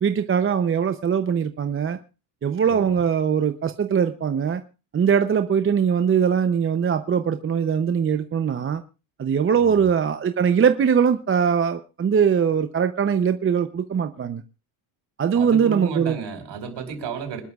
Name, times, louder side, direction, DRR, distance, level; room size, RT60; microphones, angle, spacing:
voice 1, 0.0-2.0 2.4-4.6 4.9-8.8 9.2-14.4 15.2-16.2, right 7 dB, 25° right, 0.7 m, -21 dB
voice 2, 2.6-3.0 9.6-9.8 15.3-17.4, right 6 dB, 55° right, 5.0 m, -32 dB
26.0 x 12.0 x 2.4 m
cardioid pair, 120°, 50 cm